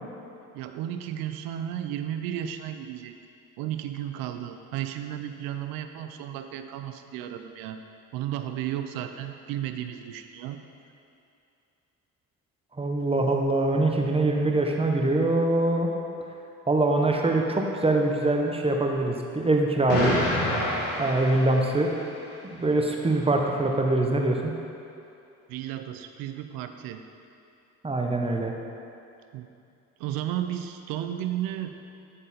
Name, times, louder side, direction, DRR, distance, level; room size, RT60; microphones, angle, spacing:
voice 1, 0.5-3.2 3.6-7.8 8.1-10.6 25.5-27.0 29.3-29.5 30.0-31.8, right 11 dB, 85° right, 8 dB, 0.5 m, -33 dB
voice 2, 12.8-15.9 16.7-20.2 21.0-21.9 22.4-24.5 27.8-28.5, right 2 dB, 15° right, 1 dB, 0.7 m, -23 dB
Explosion, 19.9-22.1, left 1 dB, 85° left, 1.5 m, -28 dB
9.3 x 3.9 x 4.1 m, 2.6 s
supercardioid pair, 80°, 34 cm